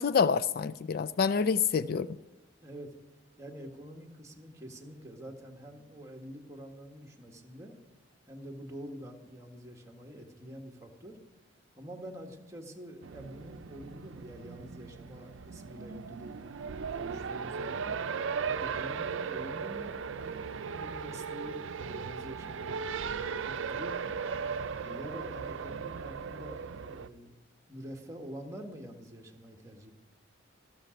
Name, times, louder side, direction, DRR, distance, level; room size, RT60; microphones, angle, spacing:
voice 1, 0.0-2.1, left 6 dB, 50° left, 0.3 m, -27 dB
voice 2, 2.6-2.9 3.4-7.7 8.3-11.2 11.8-16.3 16.9-17.9 18.4-24.1 24.8-27.3 27.7-29.9, equal, 15° right, 1.6 m, -46 dB
Race car auto racing, 13.0-27.1, right 6 dB, 90° right, 0.5 m, -37 dB
13.5 x 12.5 x 5.1 m
head